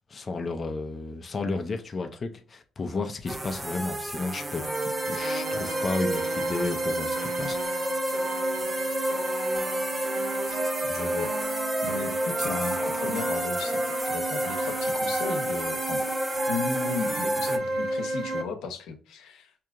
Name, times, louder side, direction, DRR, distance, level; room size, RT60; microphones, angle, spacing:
voice 1, 0.1-4.6 5.1-7.6, left 3 dB, 35° left, 0.5 m, -32 dB
sound 1, 3.3-17.6, right 1 dB, 15° right, 0.5 m, -33 dB
sound 2, 4.3-18.4, right 1 dB, 65° right, 1.3 m, -30 dB
sound 3, 9.0-12.1, right 2 dB, 40° right, 0.8 m, -46 dB
voice 2, 10.5-11.3 11.8-16.0 16.5-19.5, left 4 dB, 85° left, 0.8 m, -35 dB
4.8 x 2.8 x 2.4 m
cardioid pair, 90°, 0 cm